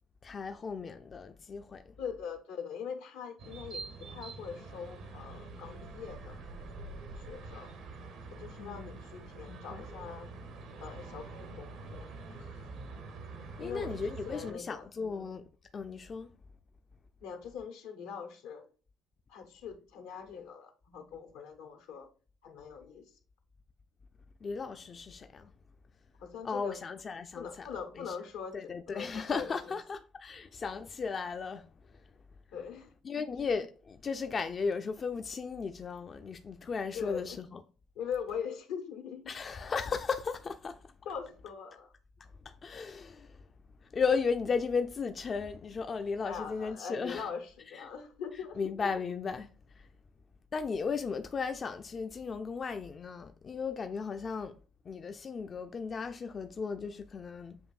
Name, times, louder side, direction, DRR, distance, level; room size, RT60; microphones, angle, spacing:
voice 1, 0.2-1.9 8.6-9.0 9.5-9.8 13.6-15.5 15.7-16.3 24.4-25.5 26.4-27.7 28.0-28.2 28.5-32.0 33.0-37.6 39.3-40.9 42.2-43.5 43.8-47.3 48.6-49.9 50.5-54.6 54.8-57.6, left 5 dB, 40° left, 0.3 m, -36 dB
voice 2, 2.0-6.5 7.1-7.7 8.3-10.3 10.8-12.7 13.6-15.2 17.2-18.7 19.3-22.1 22.4-23.2 26.2-26.8 27.3-29.8 32.5-33.2 36.9-37.4 37.9-39.3 41.0-41.9 46.2-48.6, left 7 dB, 80° left, 0.8 m, -42 dB
sound 1, 3.4-14.5, right 3 dB, 75° right, 0.8 m, -45 dB
7.1 x 2.6 x 2.4 m
supercardioid pair, 65°, 0 cm